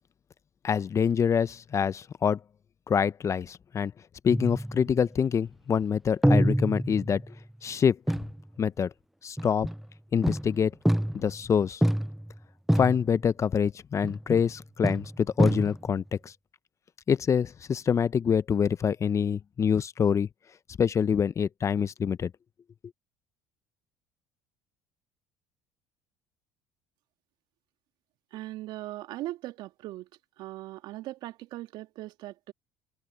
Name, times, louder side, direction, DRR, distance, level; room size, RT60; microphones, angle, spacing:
voice 1, 0.6-2.4 2.9-3.9 4.2-7.2 7.6-8.0 8.6-8.9 9.2-9.7 10.1-10.7 11.1-11.8 12.8-16.3 17.1-20.3 20.8-22.3, left 7 dB, 35° left, 0.9 m, -26 dB
sound 1, 4.3-5.1 6.2-7.4 8.1-8.4 9.4-9.9 10.2-11.4 11.8-12.4 12.7-13.2 14.0-14.6 14.8-16.0, equal, ahead, 0.4 m, -27 dB
voice 2, 28.3-30.1 30.4-32.5, right 16 dB, 65° right, 2.6 m, -39 dB
open air
hypercardioid pair, 65°, 8 cm